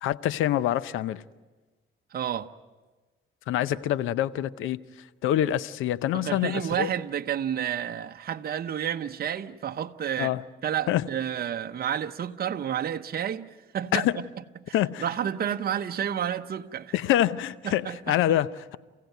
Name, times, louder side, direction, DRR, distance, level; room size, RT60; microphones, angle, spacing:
voice 1, 0.0-1.2 3.5-4.8 5.2-6.9 10.2-10.4 10.9-11.0 13.9-14.2 14.7-15.0 16.9-18.8, left 12 dB, 90° left, 0.7 m, -26 dB
voice 2, 2.1-2.5 6.1-10.3 10.6-13.5 13.7-14.1 14.7-16.9 17.6-18.1, right 9 dB, 50° right, 0.9 m, -30 dB
29.5 x 16.0 x 9.2 m
cardioid pair, 90°, 20 cm